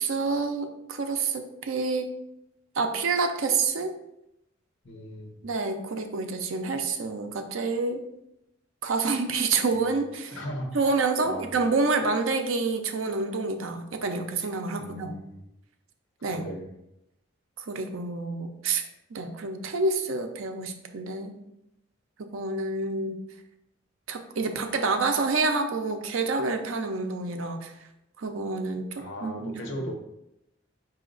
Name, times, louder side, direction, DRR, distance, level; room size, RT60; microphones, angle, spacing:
voice 1, 0.0-2.1 2.8-3.9 5.4-8.0 8.8-10.4 10.7-15.1 16.2-16.5 17.6-18.8 19.1-21.4 22.2-23.2 24.1-27.7 28.2-29.9, right 3 dB, 85° right, 6 dB, 0.5 m, -28 dB
voice 2, 4.8-5.3 9.8-9.9 10.3-10.8 11.2-11.5 14.8-15.4 16.3-16.6 29.0-30.0, equal, 70° left, 1 dB, 1.0 m, -37 dB
5.0 x 2.8 x 3.8 m, 0.85 s
head